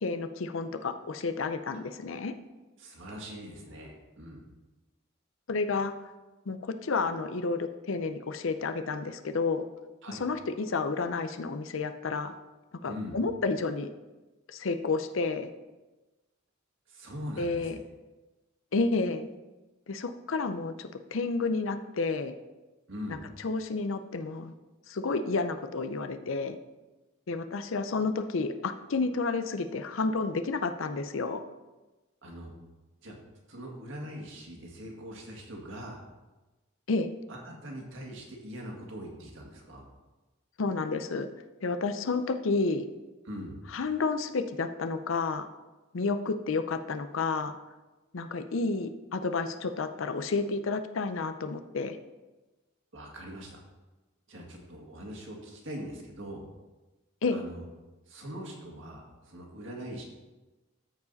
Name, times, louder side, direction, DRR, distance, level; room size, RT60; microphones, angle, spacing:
voice 1, 0.0-2.3 5.5-5.9 6.5-9.7 10.1-12.4 12.8-13.9 14.5-15.5 17.4-17.8 18.7-19.3 19.9-22.3 23.1-24.5 24.9-26.6 27.3-31.4 36.9-37.1 40.6-41.3 41.6-42.8 43.7-45.5 45.9-47.5 48.1-52.0 57.2-57.4, left 4 dB, 70° left, 9 dB, 0.6 m, -30 dB
voice 2, 2.8-4.4 10.0-10.2 12.8-13.2 16.9-17.8 22.9-23.2 32.2-32.5 33.0-33.1 33.5-36.0 37.3-39.8 43.2-43.6 52.9-53.6 54.3-56.4 57.3-57.7 58.1-60.0, equal, 65° right, 0 dB, 1.9 m, -42 dB
13.5 x 4.9 x 4.0 m, 1.1 s
head